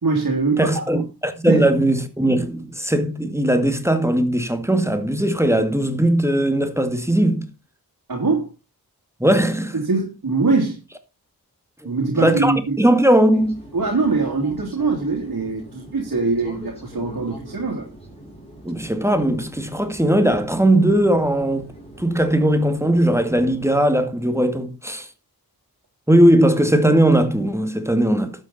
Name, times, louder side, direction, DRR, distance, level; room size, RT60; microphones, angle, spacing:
voice 1, 0.0-1.0 1.5-1.6 8.1-8.5 9.7-10.8 11.8-12.8 13.7-17.9, right 3 dB, 60° right, 3.1 m, -22 dB
voice 2, 0.6-7.5 9.2-9.8 12.1-13.6 18.6-21.7 22.0-25.1 26.1-28.4, right 1 dB, 5° right, 2.1 m, -18 dB
sound 1, 13.3-23.8, right 1 dB, 15° left, 6.7 m, -42 dB
12.0 x 8.7 x 4.2 m
cardioid pair, 50°, 38 cm